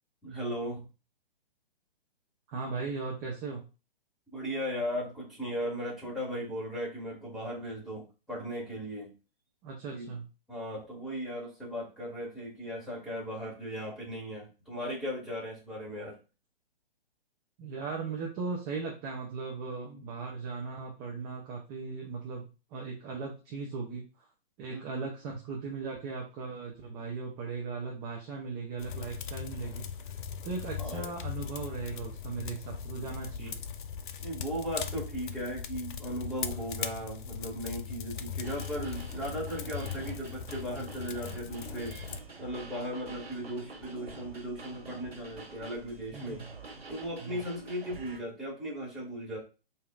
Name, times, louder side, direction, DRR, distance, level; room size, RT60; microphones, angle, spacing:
voice 1, 0.2-0.9 4.3-9.1 9.9-10.1 10.5-16.2 24.7-25.1 30.8-31.1 34.2-41.9 42.4-46.4 46.9-49.4, equal, ahead, -7 dB, 2.0 m, -37 dB
voice 2, 2.5-3.7 9.6-10.3 17.6-24.3 24.6-30.2 30.4-33.6 46.1-46.5 47.2-47.4, right 4 dB, 20° right, -2 dB, 0.7 m, -38 dB
sound 1, 28.8-42.2, left 7 dB, 55° left, 0.5 m, -39 dB
sound 2, 38.4-48.2, right 3 dB, 85° right, 1.8 m, -47 dB
4.9 x 2.8 x 2.4 m, 0.31 s
figure-of-eight pair, 130°, 30 cm